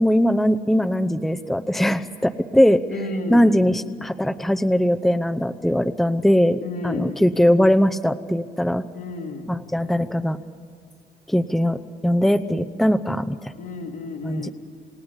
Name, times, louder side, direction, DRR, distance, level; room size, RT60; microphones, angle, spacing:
voice 1, 0.0-2.8 3.3-8.8 9.5-10.4 11.3-13.5 14.2-14.5, equal, ahead, 9 dB, 0.8 m, -20 dB
voice 2, 2.9-3.6 6.0-6.1 6.6-7.2 8.9-9.6 13.5-14.5, left 2 dB, 80° left, -4 dB, 3.1 m, -31 dB
28.0 x 18.5 x 8.2 m, 2.2 s
cardioid pair, 90°, 20 cm